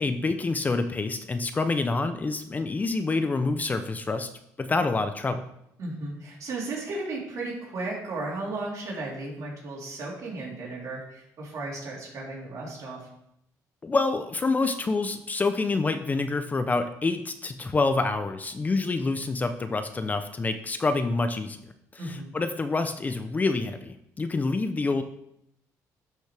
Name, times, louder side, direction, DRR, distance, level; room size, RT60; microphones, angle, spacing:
voice 1, 0.0-4.3 4.6-5.5 13.8-21.6 21.9-25.0, left 3 dB, 25° left, 9 dB, 0.6 m, -27 dB
voice 2, 5.8-13.0 22.0-22.3, right 2 dB, 55° right, -4 dB, 3.8 m, -35 dB
11.5 x 6.1 x 3.4 m, 0.78 s
cardioid pair, 105°, 7 cm